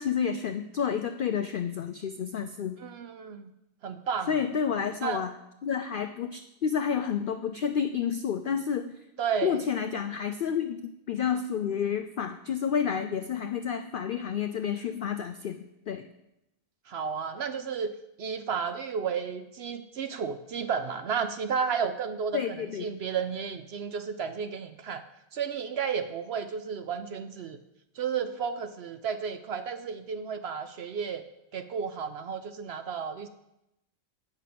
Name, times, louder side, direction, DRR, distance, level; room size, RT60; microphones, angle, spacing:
voice 1, 0.0-2.8 4.3-5.3 5.6-8.9 9.4-15.6 15.9-16.1 22.3-22.9, left 7 dB, 80° left, 8 dB, 0.4 m, -30 dB
voice 2, 2.8-3.5 3.8-4.3 5.0-5.2 9.2-9.6 16.9-17.9 18.2-25.0 25.3-27.6 28.0-31.2 31.5-33.3, right 6 dB, 65° right, 9 dB, 0.7 m, -32 dB
8.2 x 5.8 x 7.6 m, 0.87 s
omnidirectional pair, 1.4 m